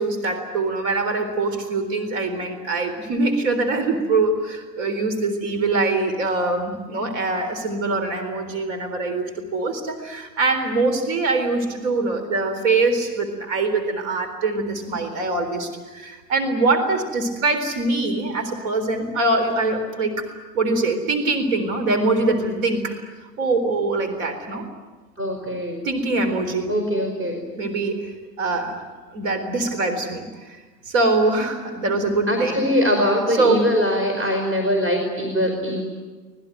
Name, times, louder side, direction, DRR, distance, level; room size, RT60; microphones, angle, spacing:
voice 1, 0.0-20.2 20.5-22.9 23.4-24.6 25.8-26.7 27.6-28.1 28.4-28.8 29.1-30.6 30.9-32.6 33.3-33.6, right 3 dB, 55° right, 7 dB, 4.0 m, -23 dB
voice 2, 25.2-25.8 26.7-27.4 32.3-35.8, equal, 25° right, 3 dB, 5.1 m, -22 dB
25.5 x 20.0 x 9.3 m, 1.3 s
figure-of-eight pair, 95°, 50 cm